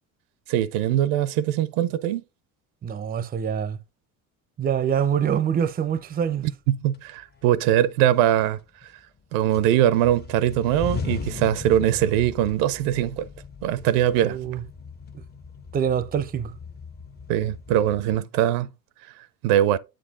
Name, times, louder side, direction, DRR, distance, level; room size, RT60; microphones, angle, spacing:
voice 1, 0.5-2.2 6.7-8.6 9.3-13.3 13.6-14.4 17.3-18.7 19.4-19.8, right 12 dB, 75° right, 0.6 m, -21 dB
voice 2, 2.8-3.8 4.6-6.5 14.2-14.6 15.1-15.2 15.7-16.5, right 8 dB, 20° right, 0.5 m, -25 dB
sound 1, 6.3-6.4 6.9-7.7 8.0-9.2 9.5-18.2, left 5 dB, 25° left, 0.7 m, -38 dB
8.1 x 7.6 x 2.4 m
supercardioid pair, 80°, 41 cm